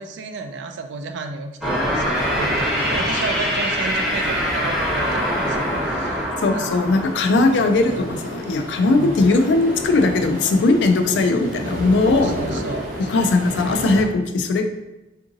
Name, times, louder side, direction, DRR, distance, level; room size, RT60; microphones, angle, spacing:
voice 1, 0.0-6.7 8.9-9.3 12.1-12.9, right 3 dB, 85° right, 6 dB, 0.3 m, -32 dB
sound 1, 1.6-8.2, equal, 5° right, 0.7 m, -24 dB
sound 2, 2.1-14.0, equal, 50° right, 0.7 m, -31 dB
voice 2, 6.4-12.6 13.1-14.7, left 3 dB, 75° left, 7 dB, 0.3 m, -19 dB
3.7 x 2.6 x 2.6 m, 0.98 s
head